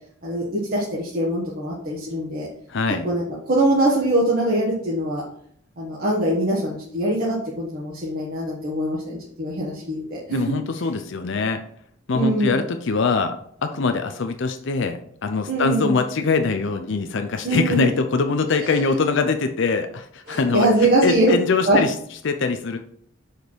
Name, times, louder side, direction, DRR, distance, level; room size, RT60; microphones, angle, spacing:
voice 1, 0.2-2.5 3.0-5.2 5.8-10.9 12.1-12.6 15.5-15.9 17.4-17.8 18.6-18.8 20.3-21.3 21.7-21.8, right 1 dB, 45° right, -5 dB, 1.4 m, -23 dB
voice 2, 2.7-3.1 10.3-11.6 12.1-13.3 13.6-21.9 22.2-22.8, left 4 dB, 55° left, 7 dB, 0.5 m, -23 dB
6.5 x 5.2 x 4.6 m, 0.65 s
head